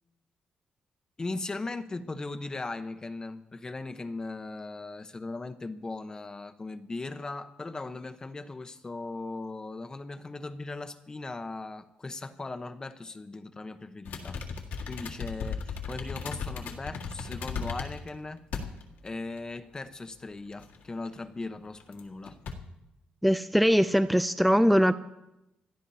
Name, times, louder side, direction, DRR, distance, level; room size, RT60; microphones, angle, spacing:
voice 1, 1.2-14.4 14.9-18.4 19.0-22.4, left 3 dB, 25° left, 1.0 m, -38 dB
sound 1, 14.1-18.1 18.5-19.1 19.4-19.5 20.6-21.1 21.8-22.0 22.3-22.5, left 5 dB, 85° left, 1.8 m, -36 dB
voice 2, 23.2-24.9, equal, ahead, 0.4 m, -22 dB
28.5 x 12.5 x 2.8 m
cardioid pair, 110°, 3 cm